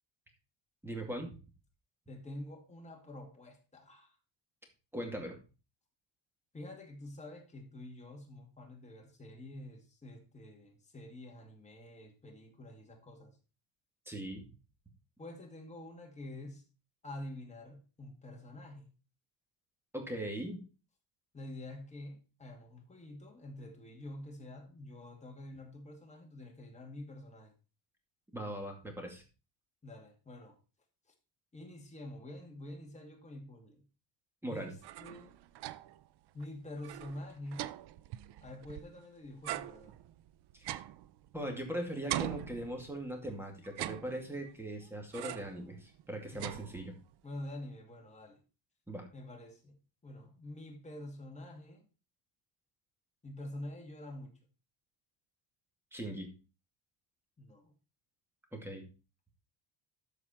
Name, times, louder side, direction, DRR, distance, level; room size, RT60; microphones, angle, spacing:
voice 1, 0.8-1.3 4.9-5.4 14.1-14.4 19.9-20.6 28.3-29.2 34.4-34.7 40.6-40.8 41.3-46.9 48.9-49.1 55.9-56.3 58.5-58.8, right 1 dB, 5° right, 2.3 m, -40 dB
voice 2, 2.1-4.2 6.5-13.4 15.2-16.6 17.0-18.9 21.3-27.5 29.8-30.6 31.5-33.9 34.5-35.4 36.3-37.7 38.4-40.0 46.3-46.5 47.2-48.4 49.1-51.9 53.2-54.4 57.4-57.7, left 1 dB, 15° left, 2.3 m, -47 dB
sound 1, 34.6-36.1 36.4-36.5 36.8-39.0 39.4-41.7 42.1-43.2 43.6-44.6 45.1-45.6 46.0-47.1, right 14 dB, 60° right, 0.6 m, -42 dB
13.0 x 4.9 x 4.4 m
cardioid pair, 150°, 46 cm